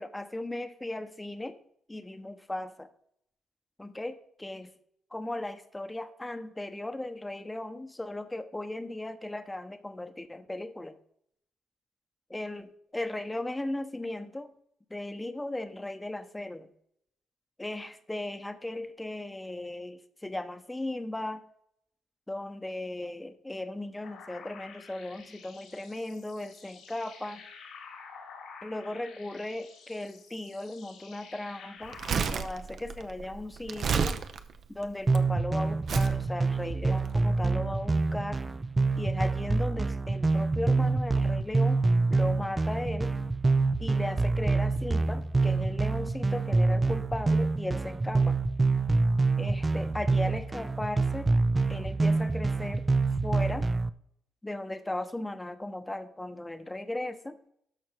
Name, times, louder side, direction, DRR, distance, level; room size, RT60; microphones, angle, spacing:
voice 1, 0.0-1.6 1.9-2.9 3.8-4.7 5.1-10.9 12.3-14.5 14.9-16.7 17.6-21.4 22.3-27.4 28.6-34.2 34.7-38.4 39.0-41.8 42.1-43.1 43.8-48.4 49.4-51.3 51.7-52.9 53.2-53.7 54.4-57.4, left 1 dB, 10° left, 9 dB, 0.9 m, -37 dB
sound 1, 24.0-32.1, left 5 dB, 85° left, 3.6 m, -50 dB
Crumpling crinkling, 31.8-35.2 35.9-36.2 36.9-37.1, right 6 dB, 55° right, 0.8 m, -31 dB
sound 2, 35.1-53.9, right 3 dB, 20° right, 0.4 m, -26 dB
12.5 x 4.5 x 4.5 m, 0.69 s
cardioid pair, 90°, 0 cm